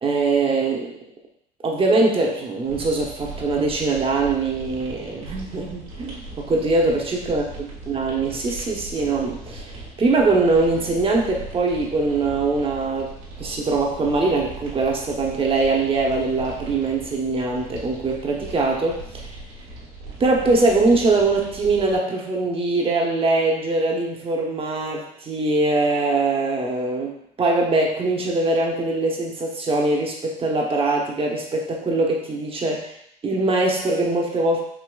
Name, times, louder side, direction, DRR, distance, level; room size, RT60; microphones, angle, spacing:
voice 1, 0.0-1.0 1.6-13.1 13.4-19.3 20.2-32.9 33.2-34.6, right 3 dB, 30° right, 0 dB, 0.9 m, -22 dB
sound 1, 2.7-22.0, right 2 dB, 90° right, 1.2 m, -39 dB
4.7 x 2.9 x 2.3 m, 0.71 s
supercardioid pair, 85°, 18 cm